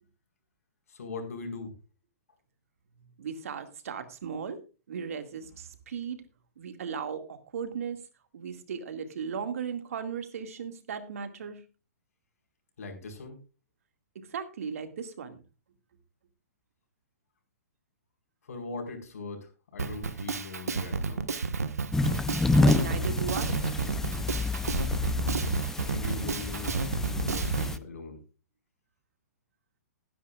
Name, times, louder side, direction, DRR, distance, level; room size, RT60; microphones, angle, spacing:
voice 1, 0.9-1.7 12.8-13.4 18.4-21.3 25.9-28.2, left 3 dB, 70° left, 4 dB, 4.9 m, -40 dB
voice 2, 3.2-4.6 4.9-6.2 6.6-8.0 8.3-11.6 14.2-15.4 22.6-23.6, right 6 dB, 70° right, 7 dB, 2.1 m, -36 dB
Drum kit, 19.8-27.7, right 5 dB, 85° right, 1.4 m, -31 dB
sound 1, 21.9-27.8, left 2 dB, 5° left, 0.5 m, -28 dB
20.5 x 10.0 x 2.4 m, 0.32 s
hypercardioid pair, 130°, 8 cm